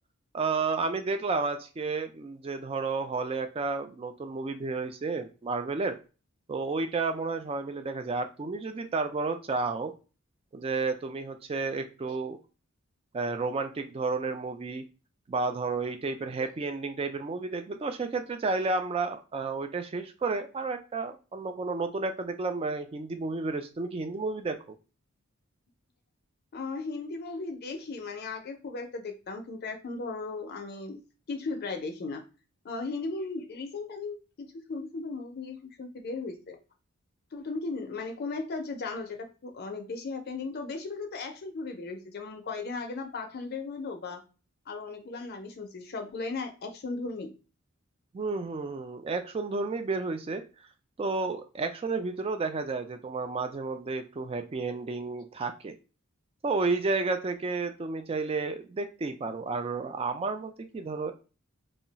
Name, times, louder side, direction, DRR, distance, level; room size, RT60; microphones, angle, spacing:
voice 1, 0.3-6.0 6.5-9.9 10.5-12.4 13.1-14.9 15.3-24.6 48.1-50.4 51.0-55.7 56.4-61.1, right 3 dB, 25° right, 7 dB, 0.3 m, -31 dB
voice 2, 26.5-31.0 31.3-32.2 32.6-36.6 37.3-44.2 44.7-47.3, left 3 dB, 45° left, 5 dB, 0.5 m, -36 dB
2.3 x 2.0 x 3.8 m, 0.33 s
head